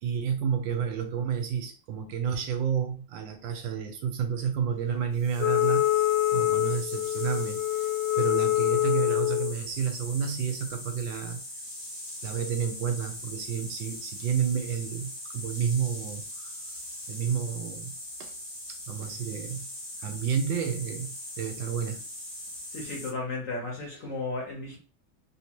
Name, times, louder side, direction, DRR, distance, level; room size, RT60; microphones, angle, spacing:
voice 1, 0.0-7.9 8.2-11.6 12.2-16.6 17.1-17.9 18.2-18.3 18.7-19.6 20.0-22.0, right 7 dB, 75° right, 1.2 m, -31 dB
sound 1, 5.1-23.1, left 1 dB, 25° left, 0.5 m, -40 dB
Wind instrument woodwind instrument, 5.4-9.5, left 15 dB, 75° left, 1.1 m, -25 dB
voice 2, 22.7-24.8, left 3 dB, 55° left, 1.0 m, -34 dB
3.4 x 2.7 x 2.9 m
omnidirectional pair, 2.2 m